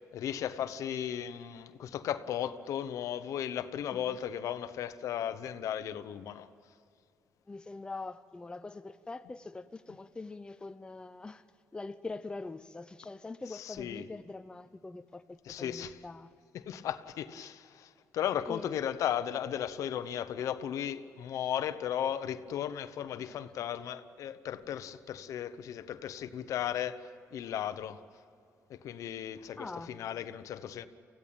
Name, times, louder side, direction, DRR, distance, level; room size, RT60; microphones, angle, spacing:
voice 1, 0.0-6.5 13.5-14.1 15.4-16.0 16.5-28.0 28.7-30.9, left 10 dB, 75° left, 1.0 m, -36 dB
voice 2, 7.5-11.4 11.7-16.3 18.5-18.6 23.2-23.4 29.6-30.0, left 3 dB, 15° left, 0.7 m, -43 dB
25.0 x 16.0 x 8.9 m
cardioid pair, 110°, 6 cm